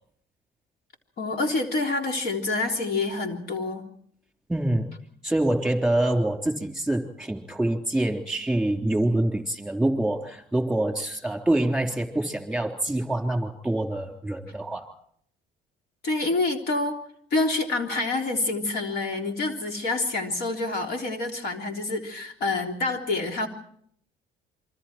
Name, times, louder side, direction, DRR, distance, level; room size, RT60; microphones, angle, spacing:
voice 1, 1.2-3.9 16.0-17.0 17.3-23.5, left 3 dB, 65° left, 3 dB, 3.6 m, -27 dB
voice 2, 4.5-4.9 5.2-14.9, right 1 dB, ahead, 4 dB, 3.6 m, -25 dB
28.0 x 24.5 x 4.5 m, 0.65 s
cardioid pair, 105°, 17 cm